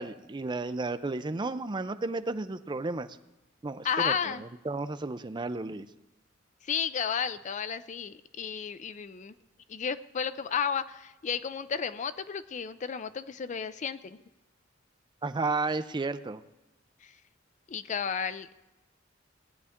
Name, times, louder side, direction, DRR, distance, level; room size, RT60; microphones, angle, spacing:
voice 1, 0.0-3.1 3.6-5.9 15.2-16.4, right 3 dB, 25° right, 11 dB, 0.5 m, -33 dB
voice 2, 3.8-4.4 6.6-9.3 9.7-14.2 17.0-17.1 17.7-18.5, left 7 dB, 40° left, 13 dB, 0.4 m, -32 dB
18.0 x 9.8 x 3.6 m, 1.0 s
head